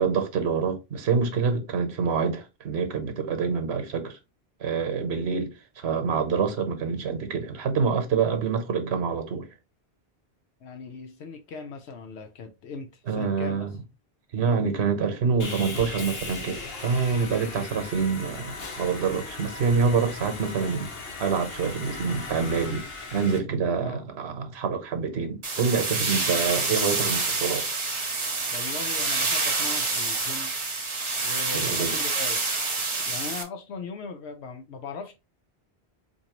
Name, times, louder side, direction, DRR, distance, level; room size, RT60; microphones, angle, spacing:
voice 1, 0.0-4.2 4.6-9.5 13.1-13.7 14.3-20.9 21.2-27.7 31.5-31.9, right 5 dB, 75° right, 1.1 m, -26 dB
voice 2, 10.6-13.7 23.7-24.1 28.5-30.5 31.2-32.4 33.1-35.1, left 4 dB, 85° left, 0.9 m, -39 dB
Sawing, 15.4-23.4, left 3 dB, 65° left, 1.2 m, -38 dB
sound 1, 25.4-33.4, right 3 dB, 30° right, 0.7 m, -27 dB
4.3 x 2.7 x 2.9 m
omnidirectional pair, 1.1 m